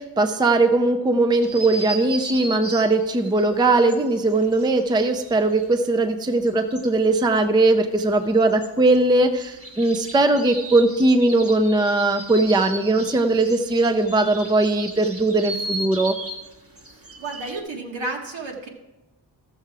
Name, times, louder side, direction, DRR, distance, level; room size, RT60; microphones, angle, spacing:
voice 1, 0.0-16.2, right 2 dB, 10° right, 7 dB, 0.4 m, -19 dB
sound 1, 1.4-6.0 6.2-17.6, right 1 dB, 30° right, 1.1 m, -37 dB
voice 2, 16.9-18.7, right 2 dB, 80° right, 1 dB, 1.8 m, -32 dB
14.0 x 6.8 x 4.7 m, 1.0 s
wide cardioid pair, 175°, 44 cm